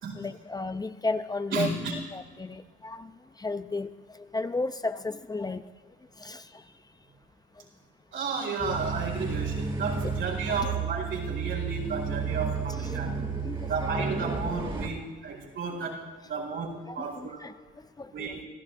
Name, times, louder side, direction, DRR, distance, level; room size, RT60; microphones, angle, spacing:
voice 1, 0.2-3.1 3.4-3.9 4.2-5.6 6.2-6.4 10.6-10.7 12.8-12.9 13.4-13.7 16.9-17.5 18.0-18.4, left 3 dB, 20° left, 11 dB, 0.6 m, -33 dB
voice 2, 1.5-1.9 8.1-13.2 13.6-17.4 18.1-18.4, right 4 dB, 80° right, -1 dB, 4.8 m, -33 dB
sound 1, 8.6-14.9, right 5 dB, 25° right, 2.2 m, -32 dB
27.0 x 15.5 x 2.6 m, 1.4 s
cardioid pair, 90°, 20 cm